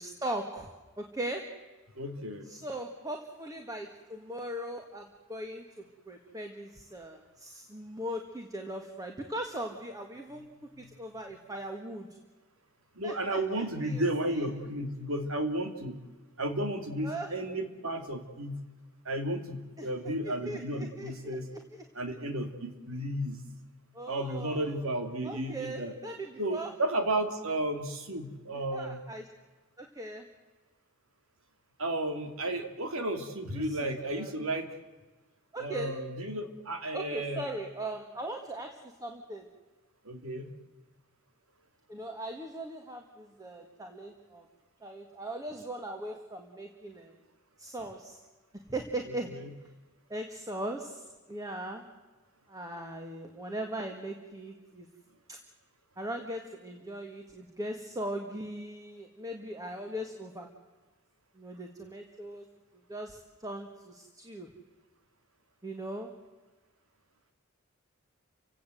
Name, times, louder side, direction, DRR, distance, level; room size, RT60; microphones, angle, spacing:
voice 1, 0.0-1.5 2.5-5.6 6.1-10.4 10.8-12.1 13.0-14.5 17.0-17.3 19.8-19.9 20.2-21.4 21.7-21.8 23.9-24.9 25.2-26.7 28.7-29.3 29.8-30.3 33.5-33.8 34.1-34.3 35.5-35.9 36.9-39.5 41.9-44.5 44.8-47.2 47.6-48.2 48.7-49.4 50.1-51.8 52.5-54.9 55.3-55.4 56.0-60.5 61.4-62.5 62.9-64.5 65.6-66.1, right 1 dB, 15° right, 3 dB, 1.9 m, -39 dB
voice 2, 2.0-2.5 10.8-10.9 13.0-16.0 16.4-18.6 19.0-21.5 21.9-23.4 24.1-26.0 26.4-29.0 31.8-34.7 35.6-37.5 40.0-40.5 49.3-49.5, right 1 dB, 75° right, 6 dB, 2.9 m, -33 dB
30.0 x 17.0 x 7.9 m, 1.3 s
head